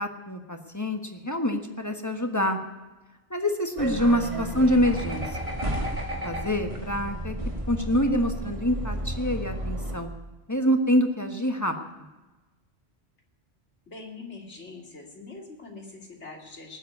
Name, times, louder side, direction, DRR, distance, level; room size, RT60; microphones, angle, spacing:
voice 1, 0.0-2.6 3.3-5.5 5.8-5.9 6.2-7.4 7.7-10.1 10.5-11.7, equal, 15° left, 5 dB, 1.4 m, -26 dB
sound 1, 3.8-10.0, right 1 dB, 30° right, 1.8 m, -32 dB
voice 2, 13.9-16.8, left 3 dB, 85° left, 1 dB, 3.0 m, -43 dB
18.5 x 7.9 x 9.5 m, 1.1 s
omnidirectional pair, 1.2 m